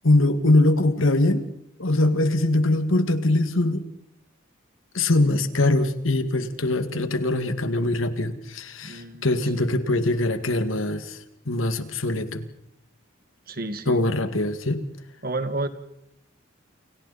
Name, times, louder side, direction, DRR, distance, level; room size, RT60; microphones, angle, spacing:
voice 1, 0.0-1.5 1.8-3.8 4.9-11.2 11.5-12.5 13.9-14.8, left 2 dB, 85° left, 9 dB, 2.0 m, -22 dB
voice 2, 8.8-9.3 9.6-9.7 13.5-14.0 15.2-15.7, right 2 dB, 50° right, 10 dB, 1.8 m, -30 dB
29.5 x 28.5 x 4.2 m, 0.79 s
head